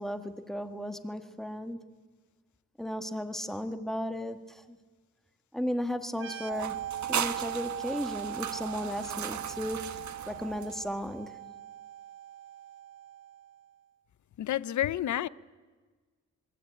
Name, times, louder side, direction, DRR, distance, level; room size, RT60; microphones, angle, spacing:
voice 1, 0.0-1.8 2.8-4.8 5.5-6.8 7.1-11.3, equal, ahead, 1.5 m, -35 dB
sound 1, 6.1-13.6, right 11 dB, 40° right, 1.0 m, -40 dB
sound 2, 6.5-11.1, right 8 dB, 60° right, 1.4 m, -37 dB
voice 2, 14.4-15.3, left 12 dB, 65° left, 0.8 m, -29 dB
26.5 x 22.5 x 8.9 m
wide cardioid pair, 145°, 32 cm